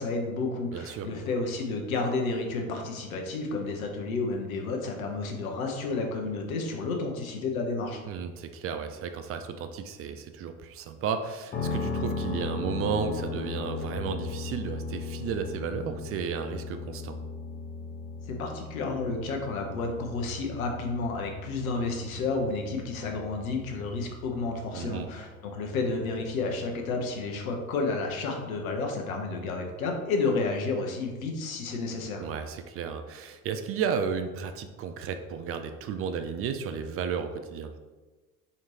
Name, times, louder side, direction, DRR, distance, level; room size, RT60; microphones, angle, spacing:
voice 1, 0.0-8.0 18.3-32.2, left 3 dB, 80° left, 2 dB, 0.9 m, -31 dB
voice 2, 0.7-1.1 8.1-17.2 24.7-25.1 32.2-37.7, right 6 dB, 35° right, 8 dB, 0.4 m, -33 dB
sound 1, 11.5-27.4, left 4 dB, 25° left, 0.5 m, -38 dB
4.2 x 3.0 x 4.0 m, 1.3 s
hypercardioid pair, 70°, 41 cm